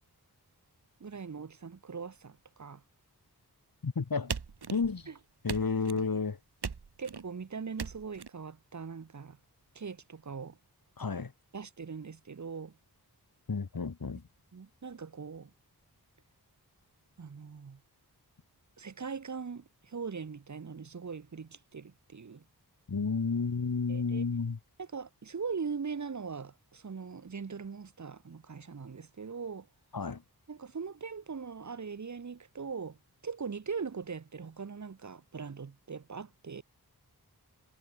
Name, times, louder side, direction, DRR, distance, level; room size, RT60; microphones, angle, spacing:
voice 1, 1.0-2.8 5.1-5.2 7.0-9.4 9.7-10.6 11.5-12.8 14.5-15.5 17.2-17.8 18.8-22.4 23.9-24.2 24.8-29.7 30.5-33.0 33.2-36.6, right 5 dB, 45° right, 1.0 m, -41 dB
voice 2, 3.8-4.3 4.7-5.1 5.4-6.4 11.0-11.3 13.5-14.2 22.9-24.6 29.9-30.2, left 4 dB, 60° left, 2.2 m, -31 dB
sound 1, 4.3-5.1 5.5-6.1 6.6-7.3 7.8-8.3, right 5 dB, 80° right, 2.3 m, -39 dB
wide cardioid pair, 70°, 39 cm